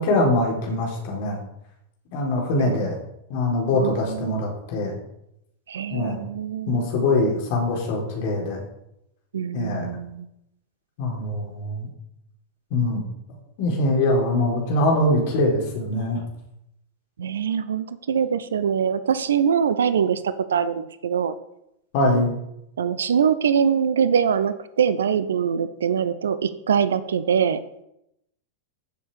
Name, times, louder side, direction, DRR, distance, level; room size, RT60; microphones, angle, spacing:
voice 1, 0.0-1.4 2.1-3.0 3.3-5.0 5.9-6.2 6.7-8.6 9.5-9.9 11.0-11.9 12.7-13.0 13.6-16.2 21.9-22.3, left 2 dB, 50° left, 0 dB, 4.3 m, -23 dB
voice 2, 3.7-4.4 5.7-6.9 9.3-10.3 17.2-21.3 22.8-27.6, right 7 dB, 65° right, 14 dB, 0.7 m, -23 dB
15.5 x 7.2 x 5.1 m, 0.82 s
figure-of-eight pair, 90°, 0 cm